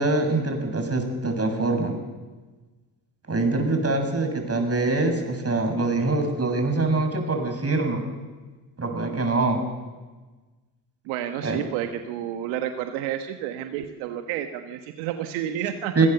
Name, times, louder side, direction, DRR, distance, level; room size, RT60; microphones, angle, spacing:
voice 1, 0.0-2.0 3.3-8.1 8.8-9.6 11.4-11.6 16.0-16.1, right 3 dB, 30° right, 5 dB, 6.9 m, -24 dB
voice 2, 11.0-15.9, right 10 dB, 75° right, 7 dB, 1.4 m, -30 dB
26.0 x 17.5 x 6.9 m, 1.3 s
hypercardioid pair, 45°, 47 cm